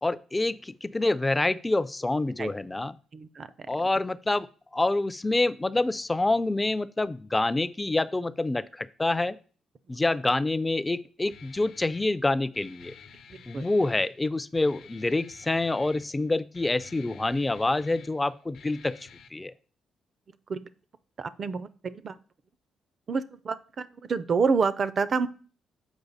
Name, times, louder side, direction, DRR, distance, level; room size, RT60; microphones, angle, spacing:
voice 1, 0.0-3.0 3.7-4.5 4.7-9.4 9.9-12.9 13.5-19.0 19.3-19.5, left 2 dB, 15° left, 16 dB, 0.4 m, -27 dB
voice 2, 3.1-3.5 13.5-13.7 20.5-20.6 21.2-22.1 23.1-25.3, right 5 dB, 45° right, 15 dB, 0.5 m, -28 dB
Guitar, 11.3-19.3, left 6 dB, 70° left, 0.7 m, -51 dB
7.1 x 4.8 x 4.0 m, 0.41 s
cardioid pair, 90°, 0 cm